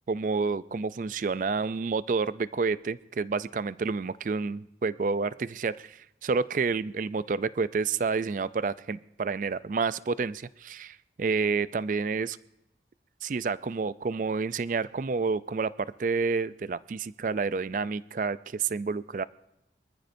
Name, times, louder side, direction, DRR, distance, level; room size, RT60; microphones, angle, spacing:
voice 1, 0.1-12.4 13.2-19.2, right 4 dB, 45° right, 17 dB, 0.4 m, -29 dB
24.5 x 14.5 x 2.6 m, 0.85 s
head